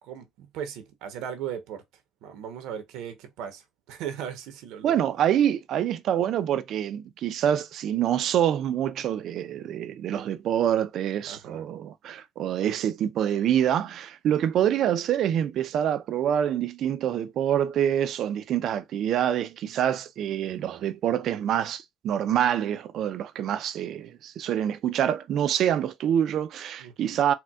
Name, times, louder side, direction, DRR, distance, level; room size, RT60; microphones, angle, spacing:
voice 1, 0.0-1.8 2.2-5.1 11.3-11.7 20.4-20.9 26.8-27.2, right 9 dB, 85° right, 0.8 m, -38 dB
voice 2, 4.8-27.3, right 10 dB, 65° right, 0.4 m, -26 dB
4.3 x 2.2 x 2.3 m
cardioid pair, 100°, 0 cm